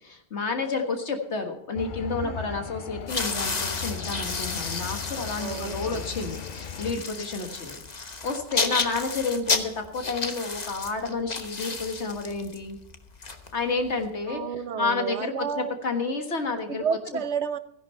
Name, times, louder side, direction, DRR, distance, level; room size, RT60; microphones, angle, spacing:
voice 1, 0.0-12.8 13.5-14.4 14.8-16.9, left 4 dB, 85° left, 4 dB, 1.9 m, -30 dB
sound 1, 1.7-6.9, left 8 dB, 55° left, 0.7 m, -37 dB
sound 2, 3.0-14.0, left 4 dB, 40° left, 1.2 m, -32 dB
voice 2, 5.4-6.1 14.3-15.7 16.7-17.6, right 7 dB, 85° right, 12 dB, 1.2 m, -31 dB
15.5 x 11.0 x 4.4 m, 0.76 s
omnidirectional pair, 1.1 m